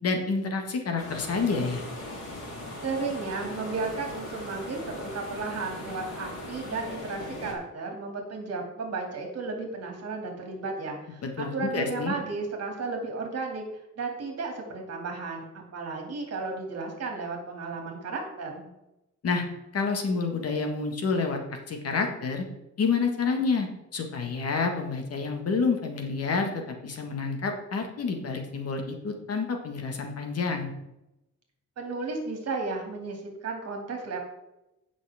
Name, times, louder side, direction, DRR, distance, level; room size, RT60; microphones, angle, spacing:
voice 1, 0.0-1.8 11.2-12.1 19.2-19.4 19.7-22.4 22.8-30.7, left 4 dB, 55° left, 4 dB, 1.6 m, -28 dB
sound 1, 1.0-7.5, left 1 dB, 85° left, 3.6 m, -39 dB
voice 2, 2.8-13.6 14.0-18.7 31.8-34.2, right 3 dB, 55° right, 2 dB, 2.5 m, -34 dB
16.5 x 6.1 x 3.5 m, 0.91 s
wide cardioid pair, 175°, 29 cm